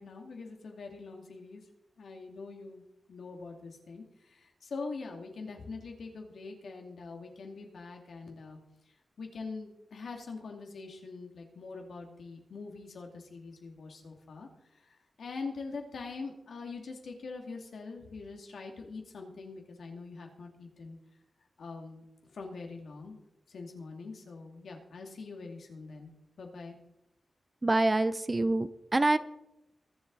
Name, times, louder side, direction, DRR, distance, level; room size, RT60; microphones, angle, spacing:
voice 1, 0.0-1.6 2.0-2.8 3.1-8.6 9.2-14.5 15.2-21.0 21.6-22.0 22.3-23.2 23.5-26.1 26.4-26.8, left 4 dB, 85° left, 2 dB, 2.5 m, -43 dB
voice 2, 27.6-29.2, right 2 dB, 25° right, 14 dB, 0.6 m, -26 dB
22.5 x 7.9 x 4.1 m, 0.87 s
wide cardioid pair, 135°, 0 cm